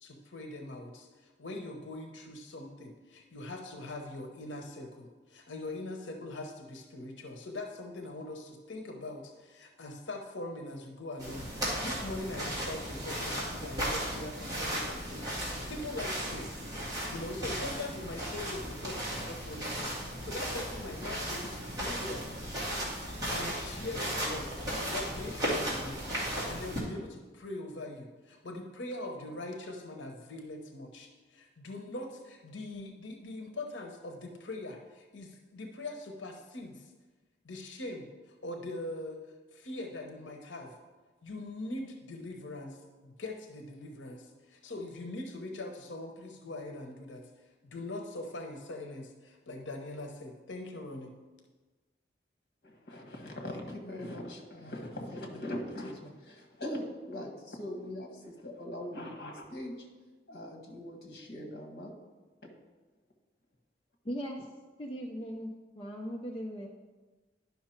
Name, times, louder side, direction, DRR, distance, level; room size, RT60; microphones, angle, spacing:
voice 1, 0.0-16.5 17.0-22.3 23.3-26.0 26.3-36.9 37.4-39.2 39.5-40.8 41.2-47.3 47.6-51.1, left 2 dB, 80° left, 3 dB, 0.9 m, -42 dB
sound 1, 11.2-26.8, equal, 20° right, 2.2 m, -36 dB
voice 2, 52.6-59.9 60.3-61.9, left 1 dB, 55° left, 0 dB, 1.6 m, -41 dB
voice 3, 64.0-64.5 64.8-66.7, equal, 30° left, -1 dB, 0.6 m, -38 dB
11.0 x 5.6 x 4.4 m, 1.3 s
head